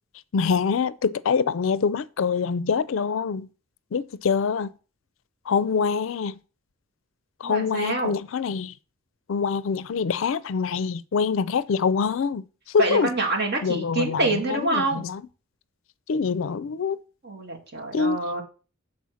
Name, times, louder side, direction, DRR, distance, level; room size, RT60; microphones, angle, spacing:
voice 1, 0.3-3.5 3.9-4.7 5.5-6.4 7.4-8.7 9.3-12.4 12.7-13.1 13.6-15.2 16.1-17.0 17.9-18.2, left 5 dB, 65° left, 0.4 m, -25 dB
voice 2, 7.4-8.1 12.8-15.1 17.2-18.4, right 2 dB, 50° right, 2.1 m, -26 dB
7.1 x 4.3 x 6.3 m
head